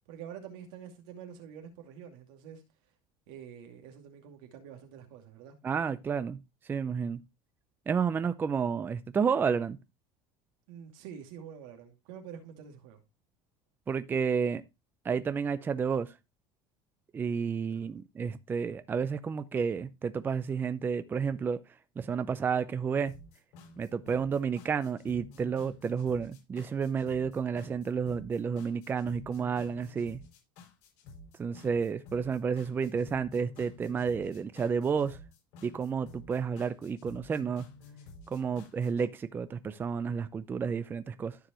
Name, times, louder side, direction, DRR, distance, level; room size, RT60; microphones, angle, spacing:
voice 1, 0.1-2.6 3.3-5.6 10.7-13.0 17.7-18.0, right 8 dB, 80° right, 2.4 m, -47 dB
voice 2, 5.6-6.4 6.7-7.2 7.9-9.8 13.9-14.6 15.0-16.1 17.1-21.6 22.0-23.1 23.8-30.2 31.4-35.2 35.6-37.7 38.3-41.4, right 6 dB, 15° right, 0.5 m, -31 dB
sound 1, 23.1-39.1, left 3 dB, 70° left, 6.6 m, -51 dB
14.0 x 4.8 x 3.0 m
cardioid pair, 160°, 12 cm